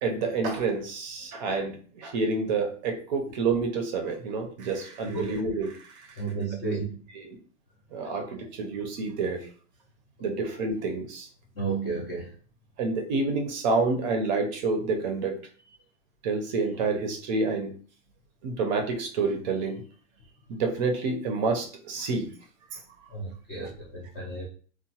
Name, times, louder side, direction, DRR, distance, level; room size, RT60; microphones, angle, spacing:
voice 1, 0.0-6.1 7.2-7.4 7.9-9.5 10.2-11.3 12.8-15.4 16.2-17.7 18.4-19.8 20.5-22.3 22.7-22.8, right 4 dB, 40° right, 4 dB, 0.5 m, -28 dB
voice 2, 5.1-5.4 6.2-7.0 11.6-12.3 23.1-24.5, right 4 dB, 20° left, -5 dB, 0.3 m, -32 dB
2.9 x 2.1 x 2.8 m, 0.42 s
supercardioid pair, 155°, 37 cm